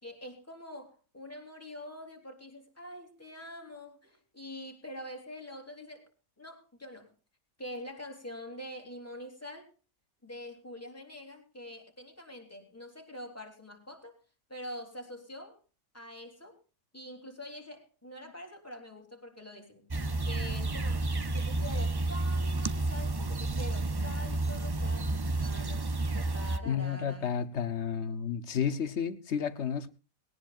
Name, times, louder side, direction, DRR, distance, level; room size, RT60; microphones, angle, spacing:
voice 1, 0.0-6.0 6.4-7.1 7.6-9.7 10.2-14.1 14.5-15.6 15.9-16.6 16.9-19.9 20.2-27.5, left 1 dB, 10° left, 3.4 m, -45 dB
sound 1, 19.9-26.6, right 2 dB, 30° right, 0.5 m, -31 dB
voice 2, 26.6-29.9, left 7 dB, 55° left, 1.2 m, -31 dB
20.0 x 18.0 x 2.5 m
omnidirectional pair, 1.4 m